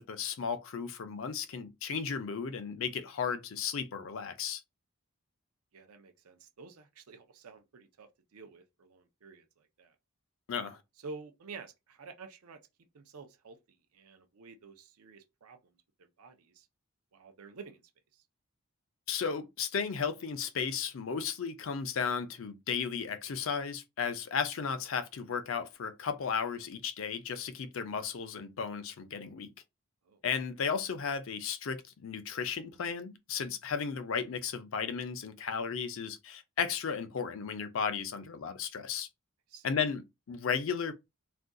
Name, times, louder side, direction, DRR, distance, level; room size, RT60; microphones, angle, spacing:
voice 1, 0.0-4.6 10.5-10.8 19.1-29.5 30.2-39.1 39.6-40.9, left 6 dB, 65° left, 0.5 m, -34 dB
voice 2, 5.7-10.0 11.0-12.6 12.9-15.7 16.2-16.7 17.1-17.8 18.1-18.2 30.1-30.2 39.5-39.8, right 4 dB, 85° right, 0.5 m, -50 dB
2.4 x 2.3 x 3.7 m
head